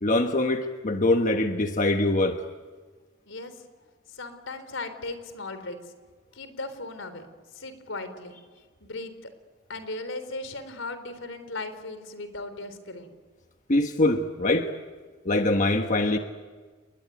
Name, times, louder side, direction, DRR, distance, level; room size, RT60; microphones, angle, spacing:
voice 1, 0.0-2.4 13.7-14.7 15.2-16.2, left 2 dB, 40° left, 5 dB, 1.3 m, -23 dB
voice 2, 3.3-3.6 4.1-5.8 6.3-7.3 7.5-8.3 8.8-9.3 9.7-13.1, left 2 dB, 80° left, 11 dB, 3.9 m, -37 dB
30.0 x 21.0 x 9.3 m, 1.4 s
head